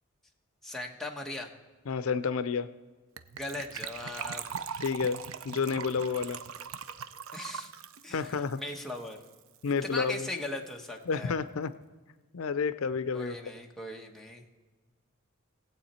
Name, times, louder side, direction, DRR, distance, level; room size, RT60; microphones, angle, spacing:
voice 1, 0.6-1.5 3.4-4.5 4.7-4.8 7.3-7.7 8.0-9.2 9.8-11.3 13.1-14.4, left 1 dB, ahead, 0 dB, 1.2 m, -39 dB
voice 2, 1.9-2.7 4.8-5.2 5.4-6.4 8.1-8.6 9.6-10.3 11.1-11.7 12.3-13.4, left 5 dB, 80° left, 14 dB, 0.5 m, -30 dB
Gurgling / Trickle dribble / Fill (with liquid), 3.2-9.4 9.7-9.8 9.9-10.1 10.4-10.5, right 7 dB, 75° right, 0.5 m, -41 dB
19.0 x 8.1 x 4.3 m, 1.3 s
head